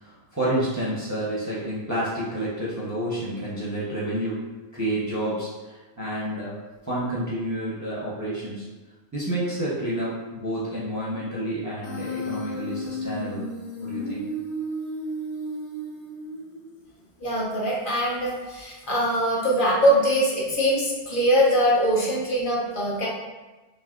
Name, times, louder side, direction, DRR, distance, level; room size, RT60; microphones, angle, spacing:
voice 1, 0.0-8.6 9.1-13.5 13.8-14.3, right 1 dB, 20° right, -8 dB, 0.5 m, -29 dB
Human voice, 11.8-16.8, equal, 75° left, 1.0 m, -33 dB
voice 2, 17.2-23.1, equal, 55° left, -5 dB, 0.8 m, -22 dB
3.3 x 2.6 x 2.4 m, 1.2 s
omnidirectional pair, 1.1 m